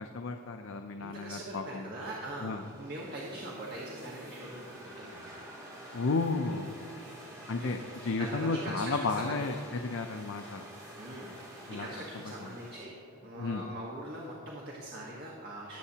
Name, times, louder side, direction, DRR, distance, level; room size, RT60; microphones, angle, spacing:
voice 1, 0.0-1.9 2.4-2.6 5.9-6.7 7.5-10.6 11.7-11.9 12.4-12.6 13.4-13.6, left 3 dB, 65° left, 6 dB, 0.5 m, -33 dB
voice 2, 1.0-5.3 7.6-7.7 8.2-9.7 10.9-13.0 13.2-15.8, right 1 dB, 45° right, -4 dB, 1.4 m, -42 dB
sound 1, 2.1-12.8, right 1 dB, 15° right, 2.7 m, -48 dB
18.0 x 8.1 x 2.8 m, 2.6 s
head